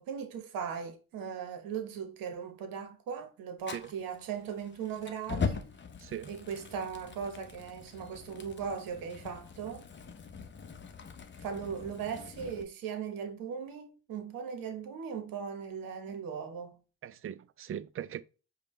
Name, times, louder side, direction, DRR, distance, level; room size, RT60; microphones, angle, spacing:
voice 1, 0.0-5.7 6.3-9.9 11.4-16.8, right 7 dB, 70° right, 1.0 m, -38 dB
Fire, 3.6-12.6, left 5 dB, 30° left, 0.7 m, -41 dB
voice 2, 6.0-6.3 17.0-18.2, right 10 dB, 40° right, 0.4 m, -39 dB
4.9 x 2.2 x 3.1 m
hypercardioid pair, 55°, 36 cm